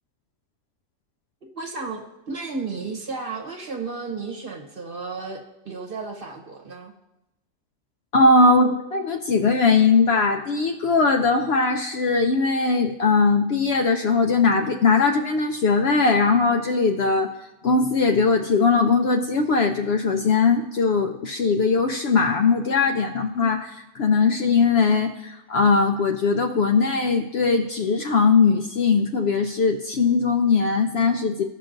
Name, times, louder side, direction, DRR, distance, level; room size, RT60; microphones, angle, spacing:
voice 1, 1.5-6.9, right 4 dB, 45° right, 1 dB, 1.0 m, -33 dB
voice 2, 8.1-17.3 17.6-31.4, left 4 dB, 65° left, 4 dB, 0.7 m, -20 dB
15.0 x 5.8 x 2.6 m, 0.93 s
omnidirectional pair, 1.4 m